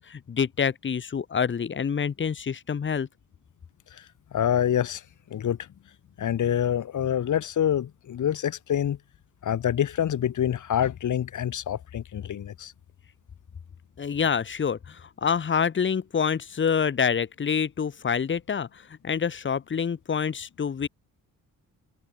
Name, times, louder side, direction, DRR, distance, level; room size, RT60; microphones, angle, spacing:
voice 1, 0.0-3.1 14.0-20.9, left 7 dB, 35° left, 1.6 m, -27 dB
voice 2, 4.3-5.0 5.3-5.6 6.2-9.0 9.4-12.7, left 10 dB, 60° left, 3.6 m, -26 dB
cardioid pair, 130°, 33 cm